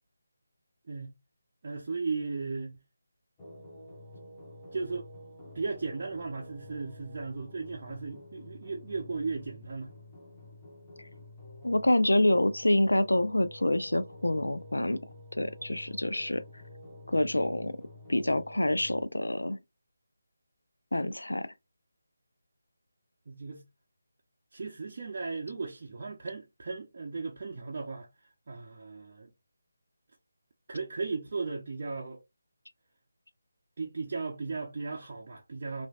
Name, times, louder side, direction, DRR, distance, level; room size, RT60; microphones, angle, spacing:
voice 1, 1.6-2.7 4.7-5.1 5.5-9.9 23.3-23.6 24.5-28.1 28.5-29.3 30.7-32.2 33.8-35.9, right 4 dB, 45° right, 0.6 m, -36 dB
sound 1, 3.4-19.0, left 1 dB, 15° left, 1.0 m, -49 dB
voice 2, 11.6-15.0 15.4-16.4 17.1-17.8 18.1-19.6 20.9-21.5, left 1 dB, 85° left, 0.4 m, -27 dB
3.1 x 2.5 x 2.3 m
figure-of-eight pair, 160°, 0 cm